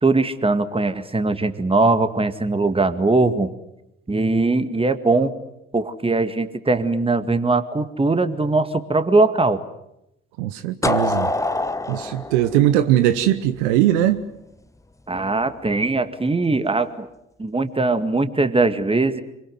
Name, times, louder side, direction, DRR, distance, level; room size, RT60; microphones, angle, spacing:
voice 1, 0.0-3.5 4.1-5.3 5.7-9.6 15.1-17.1 17.4-19.2, right 3 dB, 15° right, 2.0 m, -20 dB
voice 2, 10.4-11.3 11.9-14.2, right 12 dB, 70° right, 1.1 m, -19 dB
sound 1, 10.8-13.7, left 2 dB, 10° left, 1.3 m, -25 dB
25.5 x 24.0 x 7.8 m
figure-of-eight pair, 50°, 37 cm